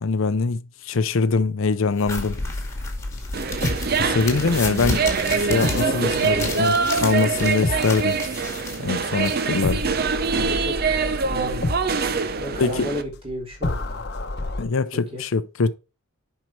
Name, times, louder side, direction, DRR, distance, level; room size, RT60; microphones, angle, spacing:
voice 1, 0.0-2.4 4.0-5.0 5.3-8.2 8.8-9.8 12.6-12.9 14.6-15.7, left 4 dB, 65° left, 0.5 m, -23 dB
sound 1, 2.0-10.1, left 3 dB, 15° left, 2.1 m, -34 dB
sound 2, 2.1-9.1 9.6-14.6, left 2 dB, 50° left, 0.9 m, -31 dB
sound 3, 3.3-13.0, right 5 dB, 45° right, 0.6 m, -24 dB
voice 2, 5.6-7.3 10.3-10.8 11.2-11.7 12.4-14.0 14.9-15.2, left 1 dB, 25° right, 3.4 m, -33 dB
7.7 x 5.5 x 4.6 m
head